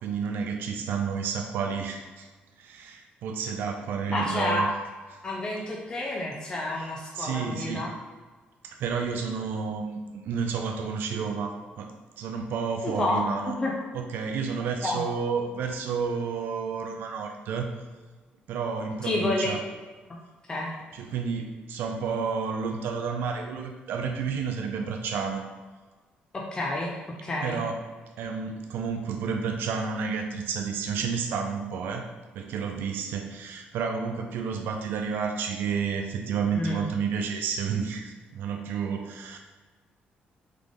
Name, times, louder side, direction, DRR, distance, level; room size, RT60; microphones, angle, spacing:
voice 1, 0.0-2.3 2.6-4.7 7.1-7.9 8.6-13.6 13.9-17.7 18.5-19.6 20.9-25.4 27.4-27.8 28.2-32.1 32.3-39.4, right 6 dB, 80° right, 4 dB, 0.4 m, -30 dB
voice 2, 4.1-4.7 5.2-8.0 12.8-13.3 13.6-13.7 14.8-15.0 19.0-19.5 20.5-20.7 26.3-26.9 27.2-27.6 36.5-36.9, left 2 dB, 25° left, -2 dB, 0.5 m, -29 dB
3.8 x 3.3 x 3.5 m, 1.3 s
cardioid pair, 145°, 3 cm